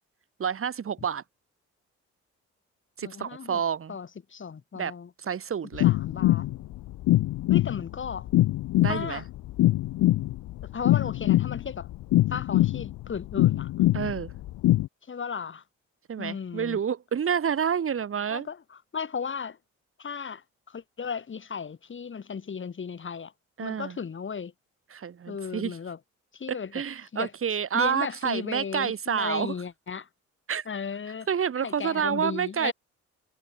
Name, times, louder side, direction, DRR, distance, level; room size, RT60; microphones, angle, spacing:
voice 1, 0.4-1.2 3.0-4.0 4.7-4.9 5.2-5.9 8.8-9.2 13.9-14.3 16.1-18.5 23.6-24.0 24.9-25.8 26.5-29.5 30.5-30.6 31.3-32.7, right 7 dB, 45° right, 2.6 m, -29 dB
voice 2, 3.0-3.6 3.9-5.1 5.8-6.5 7.5-8.3 8.9-9.2 10.6-11.9 12.3-13.7 15.1-15.6 16.2-16.8 18.3-19.6 20.0-23.3 23.6-24.5 25.3-26.0 26.3-26.7 27.1-27.3 27.7-30.1 30.7-31.3 31.6-32.7, left 6 dB, 40° left, 4.0 m, -35 dB
sound 1, 5.7-14.9, left 16 dB, 85° left, 2.2 m, -23 dB
cardioid pair, 90°, 30 cm